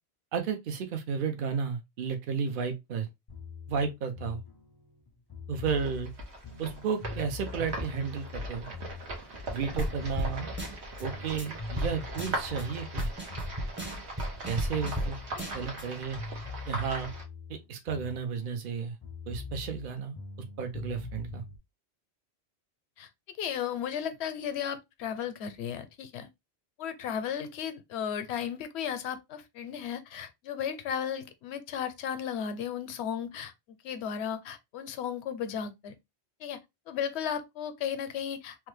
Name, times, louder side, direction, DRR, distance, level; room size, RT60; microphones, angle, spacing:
voice 1, 0.3-3.1 3.7-4.4 5.5-6.1 6.6-8.7 9.5-10.5 11.0-13.1 14.4-15.2 15.5-16.2 16.7-17.1 17.5-19.0 19.3-20.2 20.6-21.4, right 6 dB, 55° right, 0.8 m, -33 dB
sound 1, 3.3-9.6 9.9-14.2 14.4-18.7 19.0-21.6, left 4 dB, 40° left, 0.3 m, -43 dB
sound 2, 5.6-17.2, right 1 dB, 80° right, 1.3 m, -40 dB
sound 3, 9.8-9.9 10.2-10.3 10.6-11.0 11.4-11.5 11.8-11.9 12.2-12.6 13.0-15.1 15.4-15.8, equal, 15° right, 0.6 m, -33 dB
voice 2, 23.4-26.3 26.8-33.5 33.8-35.9 36.4-36.6 36.9-38.6, left 8 dB, 75° left, 0.8 m, -35 dB
3.1 x 2.1 x 3.2 m
omnidirectional pair, 1.1 m